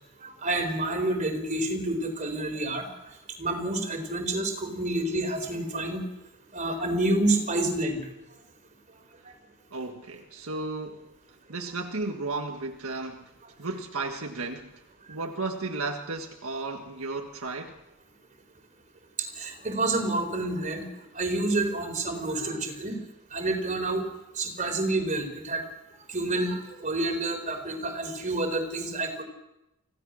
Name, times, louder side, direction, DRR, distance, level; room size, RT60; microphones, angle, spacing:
voice 1, 0.2-2.8 3.4-6.0 6.5-8.0 19.4-20.8 21.1-23.0 23.3-24.0 24.3-25.6 26.1-29.2, right 2 dB, 35° right, 4 dB, 4.2 m, -28 dB
voice 2, 9.7-11.0 11.5-13.3 13.6-14.8 15.1-17.8, right 3 dB, 75° right, 3 dB, 1.7 m, -34 dB
25.5 x 16.5 x 6.5 m, 0.91 s
head